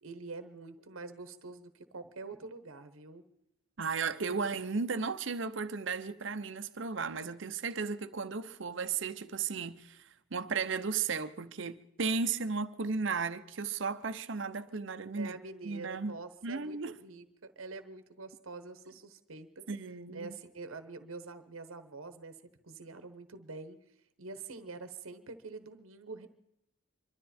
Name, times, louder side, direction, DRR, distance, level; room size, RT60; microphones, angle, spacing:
voice 1, 0.0-3.2 15.2-19.6 20.1-22.4 22.6-23.8 24.2-26.3, right 3 dB, 90° right, 1.0 m, -46 dB
voice 2, 3.8-15.4 15.6-16.2 16.4-16.9 19.7-20.3, right 5 dB, 65° right, 0.8 m, -35 dB
25.5 x 12.5 x 4.3 m
head